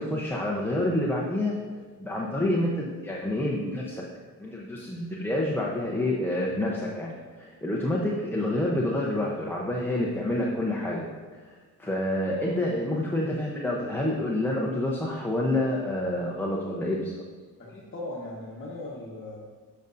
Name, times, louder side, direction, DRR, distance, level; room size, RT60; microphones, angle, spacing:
voice 1, 0.0-4.0 4.4-11.1 11.4-11.5 11.8-17.2, left 1 dB, 5° left, -4 dB, 0.7 m, -28 dB
voice 2, 17.6-19.4, left 2 dB, 30° left, -6 dB, 1.1 m, -38 dB
7.9 x 5.4 x 2.6 m, 1.4 s
cardioid pair, 100°, 43 cm